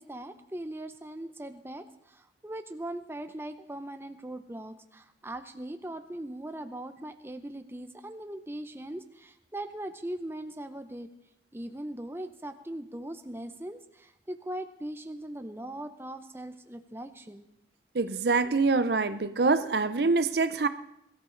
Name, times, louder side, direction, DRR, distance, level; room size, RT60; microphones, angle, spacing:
voice 1, 0.0-11.1 11.5-17.4, right 1 dB, 15° right, 8 dB, 0.7 m, -40 dB
voice 2, 17.9-20.7, right 3 dB, 60° right, 12 dB, 0.6 m, -25 dB
21.5 x 13.5 x 3.9 m, 0.80 s
head